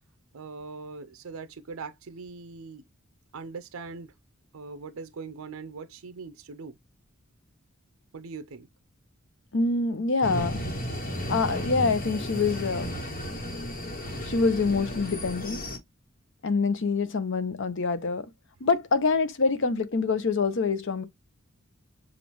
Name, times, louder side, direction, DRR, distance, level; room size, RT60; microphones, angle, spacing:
voice 1, 0.3-2.9 3.3-4.1 4.5-6.8 8.1-8.7, right 4 dB, 75° right, 0.5 m, -41 dB
voice 2, 9.5-10.6 11.3-12.9 14.3-15.6 16.4-18.3 18.6-21.1, left 4 dB, 60° left, 0.7 m, -25 dB
sound 1, 10.2-15.8, equal, 40° left, 1.2 m, -34 dB
7.1 x 2.5 x 3.0 m
head